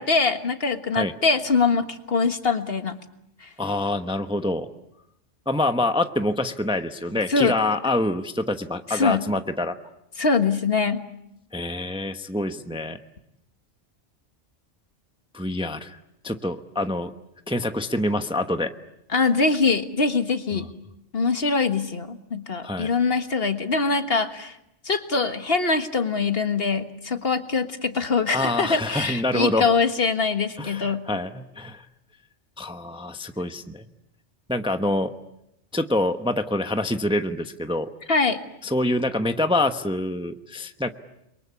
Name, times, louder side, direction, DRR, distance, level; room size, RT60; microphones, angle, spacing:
voice 1, 0.0-3.0 3.4-3.5 7.3-7.8 8.9-9.2 10.2-11.0 19.1-20.7 21.1-24.5 24.8-31.0 38.1-38.4, left 4 dB, 55° left, 8 dB, 1.7 m, -23 dB
voice 2, 3.6-4.7 5.5-9.8 11.5-13.0 15.3-16.0 16.2-17.1 17.5-18.7 22.6-22.9 28.3-29.7 30.6-31.8 32.6-33.8 34.5-35.1 35.7-37.9 38.6-40.9, left 1 dB, 5° right, 8 dB, 0.9 m, -26 dB
30.0 x 23.0 x 8.5 m, 0.84 s
omnidirectional pair, 1.2 m